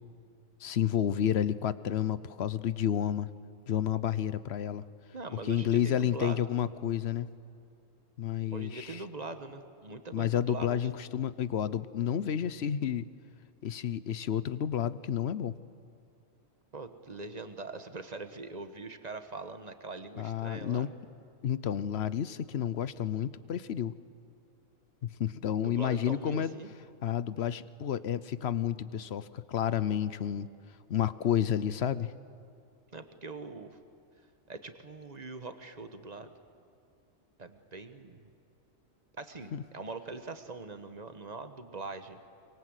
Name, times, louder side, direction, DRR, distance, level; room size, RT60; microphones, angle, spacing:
voice 1, 0.6-3.3 3.7-4.8 5.5-7.3 8.2-9.0 10.1-13.1 13.6-15.5 20.2-20.9 21.4-23.9 25.0-26.5 27.0-30.5 30.9-32.1 39.5-39.6, left 9 dB, 55° left, 16 dB, 0.9 m, -30 dB
voice 2, 5.1-6.4 8.5-10.9 16.7-20.9 25.6-26.7 32.9-33.8 34.5-36.3 37.4-38.3 39.2-42.2, right 3 dB, 30° right, 8 dB, 1.3 m, -42 dB
24.5 x 23.5 x 8.2 m, 2.6 s
omnidirectional pair, 1.4 m